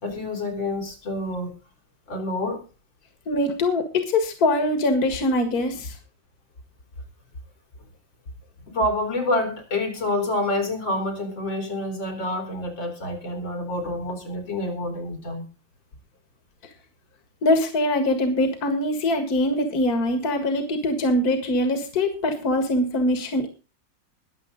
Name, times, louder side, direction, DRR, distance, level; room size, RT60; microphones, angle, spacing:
voice 1, 0.0-1.6 2.1-2.6 8.7-15.5, left 1 dB, 85° left, 4.3 m, -27 dB
voice 2, 3.3-6.0 17.4-23.5, left 1 dB, 55° left, 2.3 m, -23 dB
21.5 x 7.7 x 3.9 m
omnidirectional pair, 2.0 m